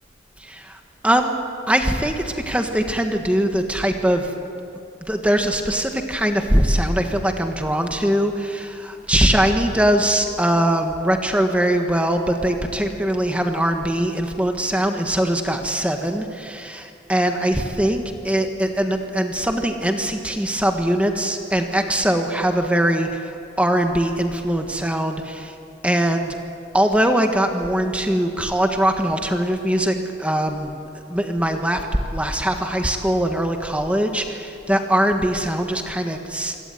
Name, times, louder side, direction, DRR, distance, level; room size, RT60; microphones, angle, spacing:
voice 1, 0.4-1.3 1.7-4.3 5.0-23.3 23.6-25.5 25.8-26.4 26.7-30.7 31.1-36.6, right 1 dB, 5° right, 4 dB, 1.5 m, -21 dB
26.5 x 17.5 x 9.3 m, 2.8 s
head